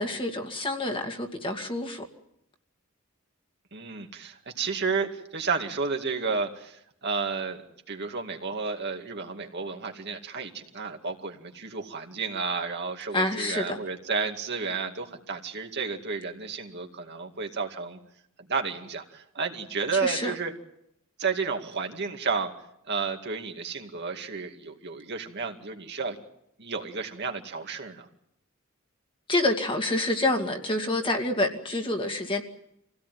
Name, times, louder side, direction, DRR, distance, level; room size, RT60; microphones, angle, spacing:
voice 1, 0.0-2.0 13.1-13.8 19.9-20.3 29.3-32.4, left 2 dB, 25° left, 2.3 m, -27 dB
voice 2, 3.7-7.6 7.9-18.0 18.5-20.5 21.2-22.5 22.9-26.2 26.6-28.1, right 4 dB, 55° right, 2.3 m, -32 dB
26.5 x 17.5 x 9.3 m
head